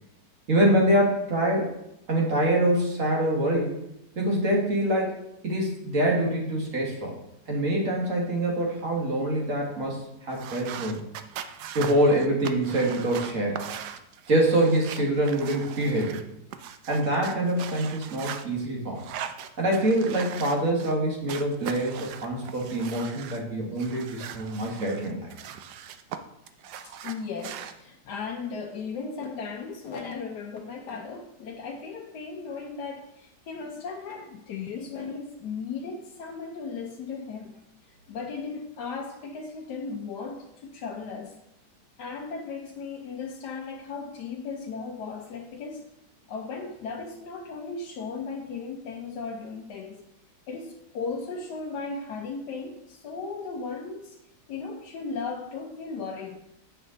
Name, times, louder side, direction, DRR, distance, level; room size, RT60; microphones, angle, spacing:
voice 1, 0.5-1.7 2.1-3.7 4.2-5.1 5.4-7.2 7.5-11.0 11.7-13.6 14.3-16.2 16.9-19.0 19.6-25.3, right 1 dB, 50° right, -1 dB, 1.9 m, -25 dB
sound 1, 10.3-16.2 16.5-18.4 19.0-21.0 21.3-23.4 23.8-26.2 26.5-27.7, right 9 dB, 75° right, 1.1 m, -40 dB
voice 2, 26.8-37.6 38.1-41.4 42.0-45.8 46.3-50.0 50.5-54.2 54.5-56.4, left 4 dB, 70° left, 1 dB, 1.2 m, -36 dB
8.3 x 5.5 x 3.8 m, 0.83 s
omnidirectional pair, 1.9 m